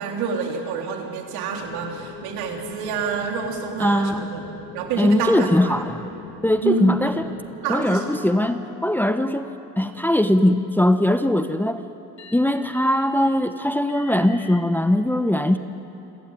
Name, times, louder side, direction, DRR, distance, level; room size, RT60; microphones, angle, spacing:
voice 1, 0.0-4.4 4.7-5.8 6.6-7.0 7.5-8.0, right 5 dB, 80° right, 1 dB, 3.9 m, -27 dB
sound 1, 1.5-7.5, left 5 dB, 90° left, 2.1 m, -41 dB
voice 2, 3.8-4.3 5.0-6.1 6.4-7.3 7.7-9.5 9.8-11.8 12.3-15.6, left 1 dB, 5° left, 9 dB, 0.9 m, -20 dB
sound 2, 7.3-7.4 7.9-11.0 12.2-14.6, left 3 dB, 45° left, 3.4 m, -47 dB
28.0 x 16.0 x 9.2 m, 2.9 s
cardioid pair, 105°, 38 cm